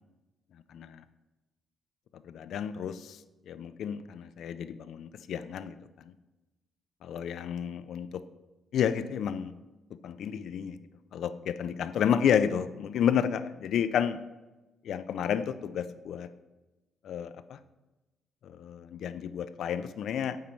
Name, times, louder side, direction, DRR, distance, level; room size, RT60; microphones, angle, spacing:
voice 1, 0.7-1.0 2.1-3.2 3.5-5.8 7.0-8.2 8.7-9.5 10.0-10.8 11.1-14.2 14.8-16.3 17.0-17.6 18.4-20.4, left 8 dB, 65° left, 12 dB, 0.4 m, -31 dB
9.2 x 4.4 x 7.2 m, 1.1 s
cardioid pair, 130°, 0 cm